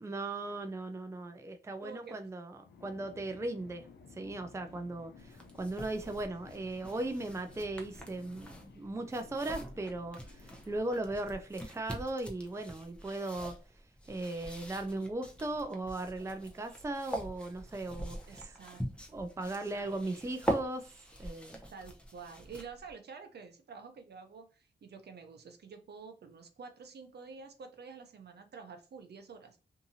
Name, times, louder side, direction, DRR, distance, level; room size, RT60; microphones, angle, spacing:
voice 1, 0.0-3.9 4.1-13.5 14.1-18.5 19.1-21.6, right 2 dB, 15° right, 0.4 m, -38 dB
voice 2, 1.8-2.2 18.3-18.8 19.1-19.2 19.7-19.9 21.7-29.6, right 5 dB, 60° right, 0.6 m, -49 dB
sound 1, 2.6-11.6, left 4 dB, 65° left, 0.7 m, -56 dB
sound 2, 5.2-22.9, right 1 dB, 5° left, 0.8 m, -43 dB
2.7 x 2.6 x 2.6 m
cardioid pair, 65°, 19 cm